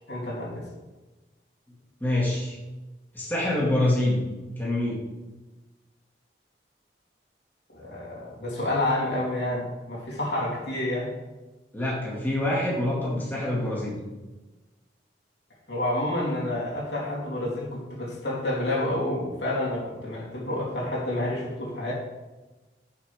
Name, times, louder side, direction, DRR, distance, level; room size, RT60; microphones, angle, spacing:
voice 1, 0.1-0.7 7.7-11.1 15.7-21.9, left 1 dB, 85° left, -4 dB, 3.1 m, -29 dB
voice 2, 2.0-2.6 3.1-4.2 4.6-5.0 11.7-14.0, left 1 dB, 10° left, -5 dB, 2.1 m, -26 dB
11.0 x 6.5 x 3.5 m, 1.1 s
head